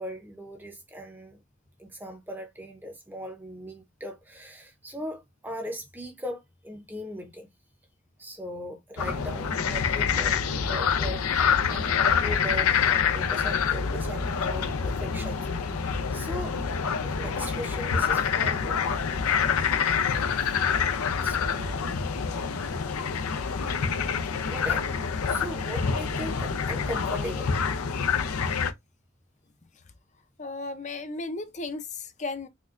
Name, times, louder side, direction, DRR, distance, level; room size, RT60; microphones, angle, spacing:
voice 1, 0.0-1.4 1.8-7.5 8.2-15.4 16.1-16.6 17.0-18.8 19.9-20.6 21.2-21.8 24.0-24.1 24.4-24.9 25.3-27.5, equal, 10° right, 0.7 m, -39 dB
sound 1, 9.0-28.7, left 6 dB, 90° left, 0.5 m, -26 dB
voice 2, 30.4-32.5, left 3 dB, 35° left, 0.5 m, -35 dB
4.3 x 2.3 x 2.4 m
head